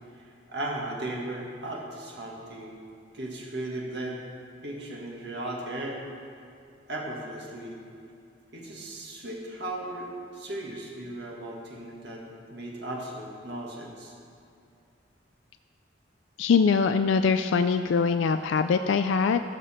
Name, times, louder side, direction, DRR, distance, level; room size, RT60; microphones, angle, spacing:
voice 1, 0.2-2.8 3.1-4.2 4.6-6.0 6.9-7.8 8.5-12.2 12.5-14.2, right 1 dB, 65° right, -2 dB, 1.7 m, -36 dB
voice 2, 16.4-19.4, left 5 dB, 80° left, 9 dB, 0.3 m, -23 dB
18.0 x 6.8 x 4.3 m, 2.4 s
head